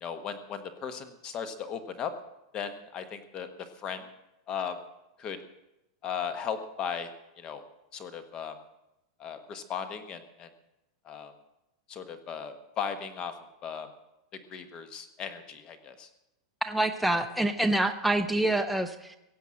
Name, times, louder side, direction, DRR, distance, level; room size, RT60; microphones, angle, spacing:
voice 1, 0.0-2.1 2.5-4.0 4.5-4.8 5.2-5.4 6.0-7.1 7.4-7.6 7.9-8.5 9.2-10.5 11.0-11.3 11.9-13.3 13.6-13.9 14.5-16.1, left 7 dB, 25° left, 10 dB, 1.2 m, -36 dB
voice 2, 16.6-19.2, right 1 dB, ahead, 6 dB, 0.5 m, -26 dB
17.0 x 7.9 x 7.6 m, 0.91 s
supercardioid pair, 155°, 3 cm